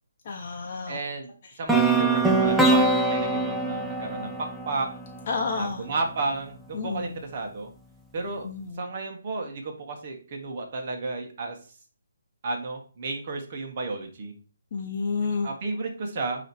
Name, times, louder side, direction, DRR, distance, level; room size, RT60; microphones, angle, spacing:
voice 1, 0.2-1.0 5.3-5.9 6.7-7.1 8.4-8.9 14.7-15.5, left 4 dB, 40° left, 1 dB, 0.9 m, -30 dB
voice 2, 0.9-1.3 1.6-4.9 5.6-7.7 8.1-8.5 8.8-11.6 12.4-14.3 15.4-16.5, right 3 dB, 40° right, 3 dB, 1.6 m, -32 dB
sound 1, 1.7-5.6, right 2 dB, ahead, 0.5 m, -23 dB
8.9 x 3.1 x 4.6 m, 0.38 s
hypercardioid pair, 160°, 0 cm